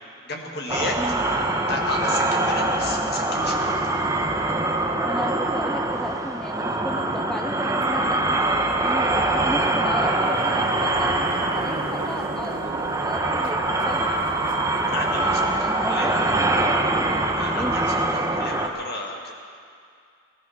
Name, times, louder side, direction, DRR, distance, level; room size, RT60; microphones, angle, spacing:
voice 1, 0.2-1.0 1.7-3.7 14.9-15.5 15.8-16.2 17.4-19.3, left 2 dB, 55° left, 0 dB, 2.0 m, -32 dB
sound 1, 0.7-18.7, right 2 dB, 15° right, 0.9 m, -23 dB
voice 2, 1.0-1.3 4.7-8.4 8.8-13.6 13.8-14.1 15.6-17.3 17.5-17.8, equal, 5° left, 5 dB, 0.3 m, -34 dB
sound 2, 10.2-15.2, right 3 dB, 85° right, 0.8 m, -38 dB
17.0 x 13.5 x 5.9 m, 2.3 s
head